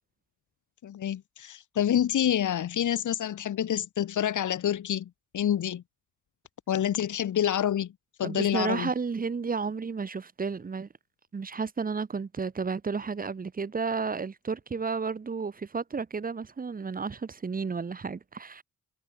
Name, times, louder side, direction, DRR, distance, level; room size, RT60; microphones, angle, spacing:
voice 1, 0.8-5.8 6.7-7.9 8.2-8.9, left 10 dB, 90° left, 1.3 m, -27 dB
voice 2, 8.2-10.9 11.3-18.6, right 5 dB, 30° right, 1.2 m, -32 dB
wide cardioid pair, 175°, 29 cm